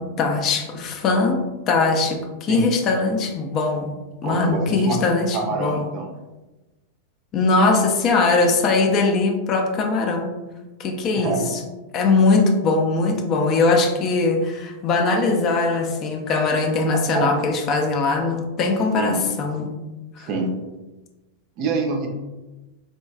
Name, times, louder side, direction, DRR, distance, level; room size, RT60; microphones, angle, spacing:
voice 1, 0.0-5.8 7.3-10.3 10.8-11.4 11.9-19.7 20.2-20.3, left 3 dB, 35° left, 3 dB, 0.4 m, -21 dB
voice 2, 4.2-5.0 5.3-6.1 11.2-11.5 17.1-17.3 18.9-19.2 20.2-20.5 21.6-22.1, right 3 dB, 40° right, 3 dB, 0.5 m, -25 dB
3.7 x 2.2 x 2.3 m, 1.1 s
figure-of-eight pair, 90°, 0 cm